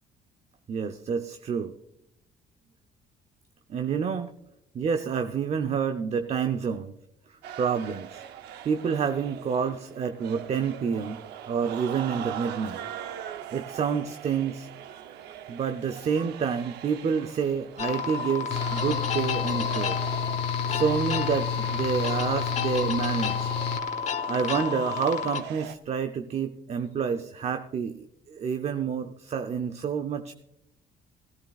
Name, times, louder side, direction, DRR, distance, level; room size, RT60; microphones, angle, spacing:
voice 1, 0.7-1.7 3.7-4.3 4.7-6.9 7.3-8.2 8.6-11.2 11.5-12.8 13.5-14.7 15.5-20.0 20.5-23.5 24.3-30.3, right 6 dB, 40° right, 8 dB, 0.7 m, -28 dB
sound 1, 7.4-25.8, right 10 dB, 80° right, 0.8 m, -41 dB
sound 2, 17.8-25.4, left 7 dB, 40° left, 1.1 m, -31 dB
Mechanical fan, 18.5-23.8, left 8 dB, 85° left, 0.8 m, -31 dB
16.5 x 13.5 x 2.4 m, 0.79 s
cardioid pair, 110°, 17 cm